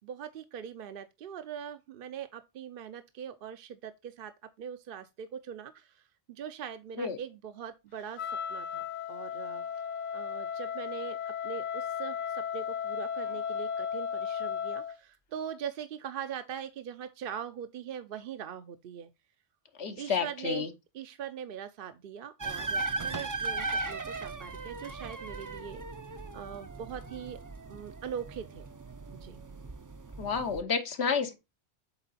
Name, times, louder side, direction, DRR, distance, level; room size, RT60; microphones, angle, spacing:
voice 1, 0.0-4.3 4.6-9.7 10.1-19.1 20.0-20.7 20.9-25.8 26.3-27.4 27.7-28.7 29.2-29.4, right 8 dB, 65° right, 0.7 m, -41 dB
Wind instrument woodwind instrument, 8.2-15.0, left 7 dB, 50° left, 0.7 m, -35 dB
voice 2, 19.8-20.7 30.2-31.4, left 6 dB, 80° left, 1.2 m, -30 dB
sound 1, 22.4-30.6, right 3 dB, 30° right, 0.4 m, -38 dB
8.0 x 3.7 x 4.0 m
omnidirectional pair, 1.1 m